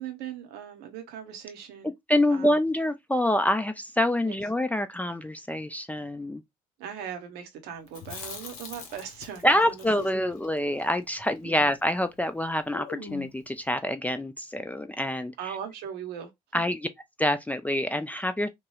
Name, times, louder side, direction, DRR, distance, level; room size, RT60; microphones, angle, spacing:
voice 1, 0.0-1.9 2.3-2.6 4.2-4.4 6.8-10.3 11.4-11.6 15.4-16.3, right 8 dB, 65° right, 0.8 m, -39 dB
voice 2, 2.1-6.4 9.4-15.5 16.5-16.9 17.2-18.5, left 1 dB, 10° left, 0.4 m, -26 dB
Chewing mastication, 7.9-12.1 12.3-12.4 12.7-13.5, left 5 dB, 75° left, 0.7 m, -43 dB
2.9 x 2.2 x 3.0 m
figure-of-eight pair, 45°, 18 cm